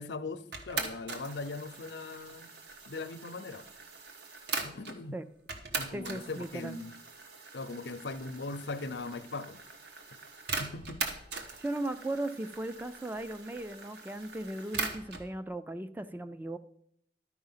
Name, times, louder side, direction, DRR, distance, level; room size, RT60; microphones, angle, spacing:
voice 1, 0.0-2.5 2.9-3.6 4.6-5.2 5.8-7.0 7.5-9.6 10.6-11.0, left 3 dB, 80° left, 12 dB, 0.6 m, -40 dB
sound 1, 0.5-5.0 5.5-15.3, right 4 dB, 70° right, 1.1 m, -41 dB
voice 2, 5.9-6.8 11.6-16.6, right 1 dB, 10° right, 11 dB, 0.3 m, -37 dB
11.5 x 4.8 x 5.6 m, 0.70 s
head